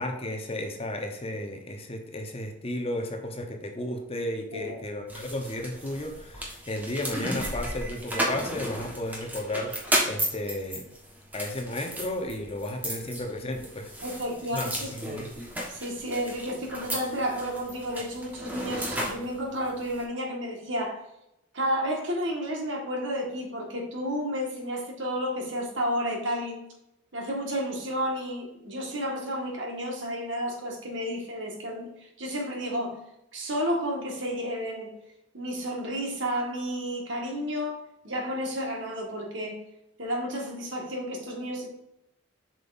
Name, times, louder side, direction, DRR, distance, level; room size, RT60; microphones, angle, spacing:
voice 1, 0.0-10.9 11.3-13.9 14.5-15.3, left 1 dB, 30° left, 3 dB, 0.9 m, -33 dB
sound 1, 5.1-20.0, equal, 10° right, 1.3 m, -34 dB
voice 2, 14.0-14.9 15.7-21.0 21.5-26.6 27.1-33.0 33.3-34.9 35.3-37.8 38.0-39.6 40.0-41.7, equal, 60° right, 0 dB, 1.7 m, -31 dB
7.4 x 5.5 x 2.6 m, 0.84 s
head